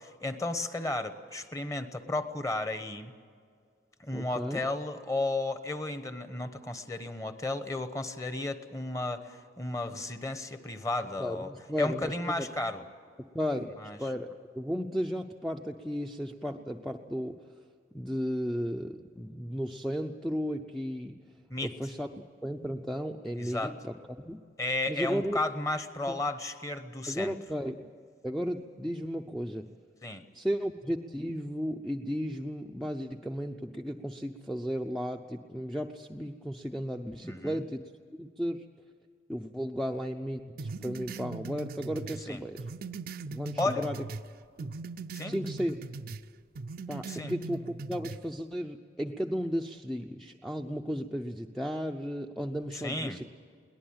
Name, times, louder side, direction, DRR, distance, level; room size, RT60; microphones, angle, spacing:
voice 1, 0.0-3.1 4.0-11.5 11.8-12.8 13.8-14.0 21.5-21.7 23.4-23.7 24.6-27.3 30.0-30.2 37.2-37.6 42.3-42.4 43.6-43.9 45.1-45.3 47.1-47.3 52.8-53.2, left 2 dB, 15° left, 10 dB, 1.1 m, -33 dB
voice 2, 4.1-4.6 11.2-12.5 13.2-13.7 14.0-14.3 14.5-17.5 17.9-21.2 21.6-24.4 24.9-25.4 26.1-26.2 27.1-27.9 28.2-29.7 30.3-37.8 38.2-38.7 39.3-42.6 43.3-44.0 44.6-44.7 45.2-45.8 46.9-53.3, equal, ahead, 4 dB, 0.6 m, -34 dB
sound 1, 40.6-44.3 44.6-46.2 46.5-48.2, right 3 dB, 50° right, 0.5 m, -40 dB
22.5 x 18.5 x 8.8 m, 2.1 s
head